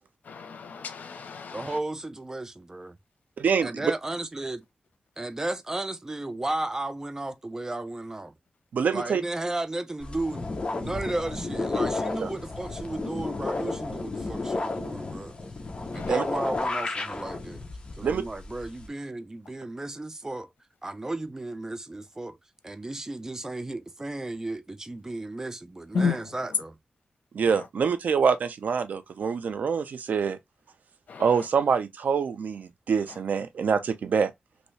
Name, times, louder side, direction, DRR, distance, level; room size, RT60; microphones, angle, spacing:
voice 1, 0.2-1.8 9.0-9.1 15.9-16.2 25.9-26.3 27.4-27.7 31.1-31.5 33.1-33.2, left 5 dB, 85° left, 0.7 m, -32 dB
voice 2, 1.5-2.9 3.6-4.6 5.2-8.3 8.9-15.4 15.9-17.6 18.0-20.5 20.8-22.4 22.6-26.8, right 2 dB, 20° right, 0.4 m, -34 dB
voice 3, 3.4-3.9 8.7-9.2 12.2-12.3 16.1-16.2 18.0-18.2 27.3-30.4 31.2-34.3, right 6 dB, 80° right, 0.5 m, -25 dB
sound 1, 10.0-18.9, left 3 dB, 35° left, 0.7 m, -32 dB
3.0 x 2.7 x 3.1 m
wide cardioid pair, 115°, 3 cm